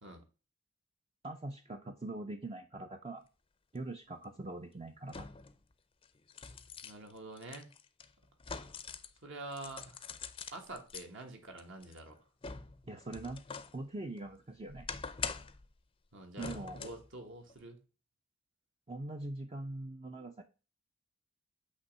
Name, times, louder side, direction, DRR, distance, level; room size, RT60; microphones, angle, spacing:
voice 1, 1.2-3.2 3.7-5.3 12.8-13.4 13.7-14.9 16.4-16.8 18.9-20.4, right 2 dB, 30° right, 0.5 m, -42 dB
sound 1, 3.8-3.9 5.1-5.6 6.0-9.2 9.5-11.1 11.6-13.8 14.2-15.7 16.4-17.1 17.5-17.6, left 5 dB, 25° left, 0.5 m, -44 dB
voice 2, 6.8-7.7 9.2-10.0 10.5-12.2 16.1-17.8, right 2 dB, 65° right, 1.5 m, -47 dB
8.2 x 3.0 x 5.3 m
head